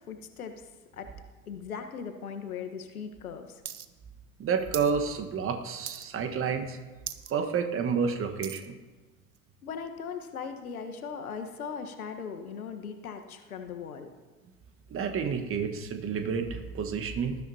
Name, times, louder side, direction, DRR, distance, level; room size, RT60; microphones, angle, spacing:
voice 1, 0.1-0.6 0.9-1.1 1.5-3.6 9.6-14.1, left 6 dB, 70° left, 6 dB, 1.4 m, -39 dB
sound 1, 3.7-3.9 4.1-5.0 5.3-5.5 5.9-6.3 6.7-6.8 7.0-7.3 7.8-8.7 9.4-9.5, right 9 dB, 80° right, 0.8 m, -40 dB
voice 2, 4.4-6.8 7.3-8.8 14.9-17.4, right 6 dB, 30° right, 5 dB, 1.5 m, -30 dB
19.0 x 13.5 x 2.9 m, 1.3 s
figure-of-eight pair, 80°, 44 cm